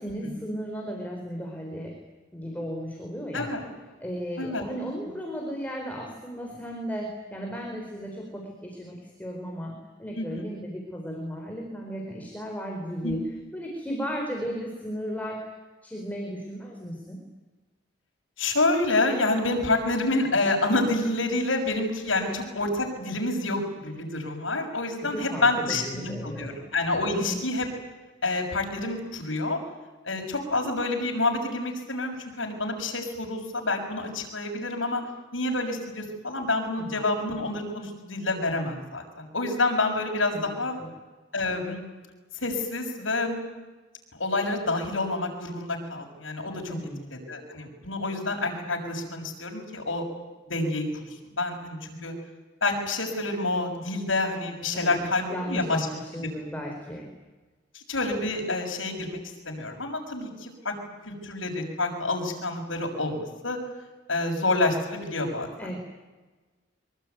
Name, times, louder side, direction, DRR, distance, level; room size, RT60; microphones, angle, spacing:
voice 1, 0.0-2.0 2.3-3.5 4.0-13.2 13.5-15.5 15.8-17.2 22.2-22.4 24.9-26.6 27.1-27.4 36.8-37.0 40.3-40.5 40.8-40.9 46.7-47.1 54.7-57.1 65.6-65.8, equal, 10° left, 0 dB, 4.5 m, -35 dB
voice 2, 3.3-3.6 4.4-4.6 10.1-10.4 13.0-13.1 18.4-27.7 28.2-29.6 30.0-35.0 35.3-40.7 41.3-41.8 42.3-43.4 44.2-46.7 47.1-50.0 50.5-51.1 51.3-52.1 52.6-55.9 56.2-56.3 57.7-59.2 59.4-60.7 61.0-63.6 64.1-65.8, left 2 dB, 85° left, 2 dB, 6.6 m, -28 dB
24.5 x 23.0 x 9.5 m, 1.2 s
head